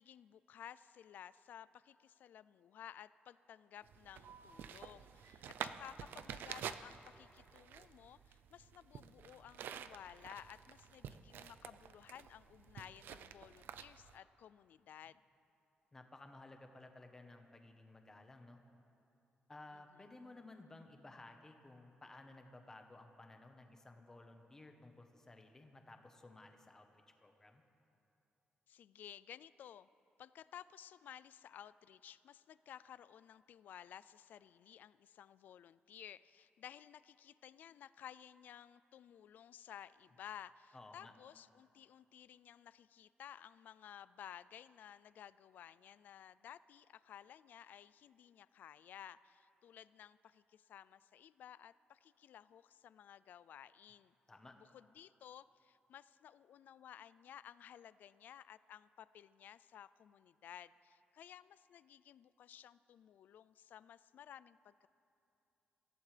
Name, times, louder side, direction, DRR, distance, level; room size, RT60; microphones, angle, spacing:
voice 1, 0.0-15.2 19.7-19.8 28.7-29.9 30.2-54.1 54.6-64.9, left 10 dB, 60° left, 17 dB, 0.3 m, -56 dB
sound 1, 3.8-14.2, right 8 dB, 80° right, 0.5 m, -49 dB
voice 2, 15.9-18.6 19.5-27.6 40.7-41.1 54.3-54.5, left 2 dB, 15° left, 5 dB, 1.0 m, -56 dB
25.5 x 15.0 x 3.3 m, 2.9 s
wide cardioid pair, 170°, 3 cm